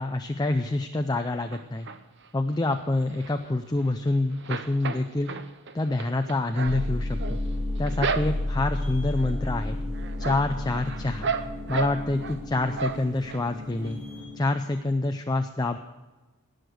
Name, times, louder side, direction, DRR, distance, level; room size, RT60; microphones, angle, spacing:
voice 1, 0.0-1.9 2.3-5.3 5.7-7.4 7.8-9.8 10.2-11.3 11.7-14.0 14.3-15.8, left 2 dB, 15° left, 6 dB, 0.5 m, -27 dB
sound 1, 1.5-2.3 2.7-4.0 4.3-8.7 9.2-9.6 9.9-12.4 12.7-13.4 13.8-13.9 14.2-14.3, right 5 dB, 50° right, 0.8 m, -34 dB
sound 2, 6.6-14.4, left 1 dB, 20° right, 3.8 m, -32 dB
19.0 x 6.6 x 7.9 m, 1.1 s
head